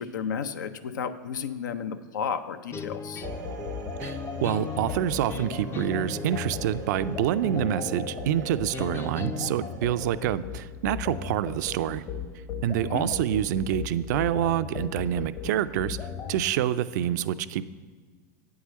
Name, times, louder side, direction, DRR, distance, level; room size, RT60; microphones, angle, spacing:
voice 1, 0.0-3.2 12.8-13.1, left 7 dB, 85° left, 11 dB, 0.5 m, -32 dB
sound 1, 2.7-9.5, left 6 dB, 25° left, 0.4 m, -38 dB
sound 2, 3.2-16.4, left 7 dB, 45° left, 1.0 m, -37 dB
sound 3, 3.2-10.2, right 5 dB, 85° right, 0.8 m, -42 dB
voice 2, 4.0-12.0 12.6-17.7, right 11 dB, 70° right, 14 dB, 0.4 m, -27 dB
8.2 x 4.7 x 7.2 m, 1.5 s
hypercardioid pair, 100°, 10 cm